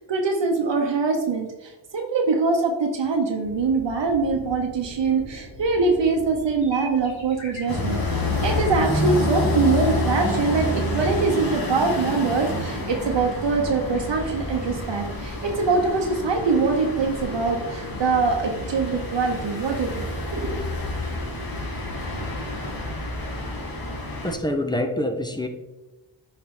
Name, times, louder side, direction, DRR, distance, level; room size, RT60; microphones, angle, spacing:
voice 1, 0.0-20.6, right 4 dB, 65° right, 2 dB, 1.1 m, -23 dB
sound 1, 3.4-22.8, left 1 dB, 75° left, 2.7 m, -41 dB
sound 2, 7.7-24.3, left 1 dB, 50° left, 2.4 m, -28 dB
voice 2, 24.2-25.5, left 1 dB, 10° left, 6 dB, 1.0 m, -25 dB
8.8 x 4.8 x 3.8 m, 1.1 s
cardioid pair, 65°, 46 cm